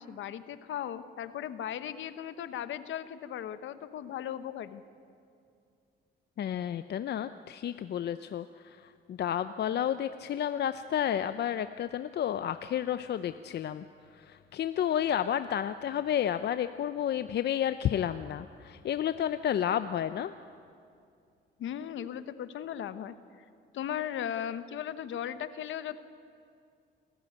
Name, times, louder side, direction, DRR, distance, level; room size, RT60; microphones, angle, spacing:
voice 1, 0.0-4.8 21.6-23.1 23.7-26.0, left 10 dB, 75° left, 12 dB, 1.1 m, -37 dB
voice 2, 6.4-13.8 14.1-20.3, left 10 dB, 60° left, 11 dB, 0.6 m, -31 dB
27.0 x 14.0 x 9.4 m, 2.4 s
cardioid pair, 90°, 20 cm